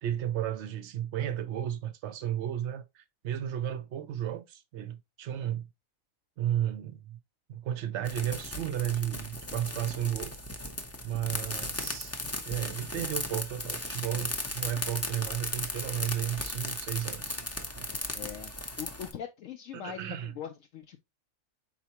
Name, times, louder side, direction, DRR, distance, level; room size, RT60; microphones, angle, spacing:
voice 1, 0.0-5.7 6.4-7.2 7.5-10.4 11.0-12.1 12.4-17.4 17.8-17.9 19.7-20.3, right 11 dB, 65° right, 0.8 m, -33 dB
sound 1, 8.1-19.1, left 1 dB, 20° left, 0.4 m, -36 dB
voice 2, 18.1-18.5 18.8-21.0, left 9 dB, 75° left, 0.9 m, -41 dB
4.6 x 4.1 x 2.9 m
omnidirectional pair, 1.4 m